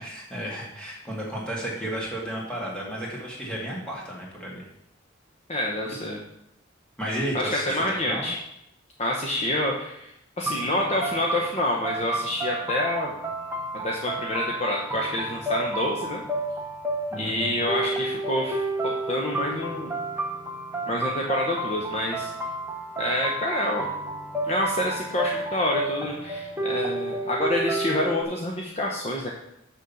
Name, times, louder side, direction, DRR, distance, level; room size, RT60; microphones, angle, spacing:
voice 1, 0.0-4.6 7.0-8.3 17.1-17.6, right 1 dB, 5° left, -4 dB, 2.4 m, -33 dB
voice 2, 5.5-6.2 7.3-8.4 9.0-10.1 10.4-13.1 13.7-16.2 17.2-19.9 20.9-22.3 23.0-23.9 24.5-29.3, left 1 dB, 30° left, -1 dB, 1.0 m, -27 dB
sound 1, 10.5-28.2, right 2 dB, 10° right, 1.1 m, -31 dB
6.6 x 6.4 x 7.1 m, 0.79 s
head